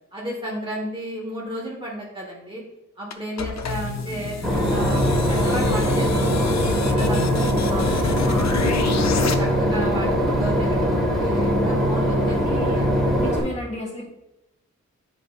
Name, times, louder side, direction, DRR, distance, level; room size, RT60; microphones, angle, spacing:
voice 1, 0.1-2.6 3.0-4.4 4.7-9.0 9.4-12.9, right 1 dB, 15° right, -4 dB, 1.3 m, -33 dB
sound 1, 3.1-9.3, left 5 dB, 65° left, 0.6 m, -28 dB
Boat Water vehicle / Engine, 4.4-13.4, equal, ahead, 1.2 m, -21 dB
voice 2, 12.4-12.8 13.1-14.1, right 1 dB, 25° left, -3 dB, 1.9 m, -33 dB
10.0 x 5.0 x 2.4 m, 0.91 s
wide cardioid pair, 160°, 29 cm